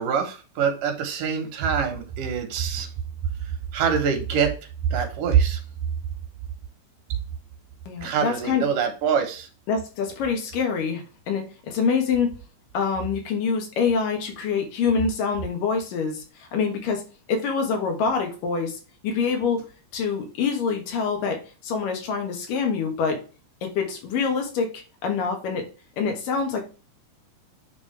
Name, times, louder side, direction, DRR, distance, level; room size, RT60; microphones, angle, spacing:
voice 1, 0.0-2.9 3.4-4.5 4.9-5.6 8.0-9.5, right 7 dB, 80° right, 6 dB, 2.8 m, -24 dB
voice 2, 7.9-8.6 9.7-12.4 12.7-17.0 17.3-19.7 19.9-23.2 23.6-24.7 25.0-25.7 26.0-26.6, left 5 dB, 85° left, 3 dB, 3.2 m, -25 dB
9.2 x 3.6 x 3.3 m, 0.34 s
omnidirectional pair, 3.7 m